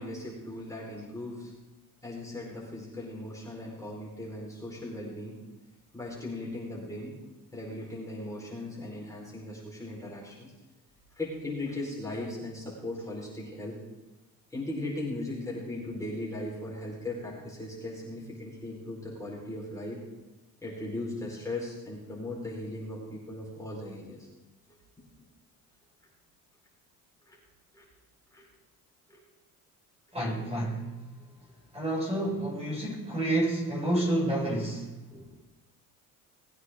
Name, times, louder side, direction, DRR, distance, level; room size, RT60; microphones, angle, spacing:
voice 1, 0.0-1.5 2.0-5.4 5.9-7.1 7.5-10.5 11.2-13.8 14.5-20.0 20.6-24.3 27.3-27.4 27.7-27.8 28.3-28.4 29.1-29.2 31.3-31.4 35.1-35.2, left 1 dB, 10° left, -5 dB, 4.8 m, -38 dB
voice 2, 30.1-30.9 31.7-35.0, right 1 dB, 20° right, -3 dB, 5.4 m, -29 dB
20.0 x 9.5 x 3.8 m, 1.1 s
cardioid pair, 100°, 34 cm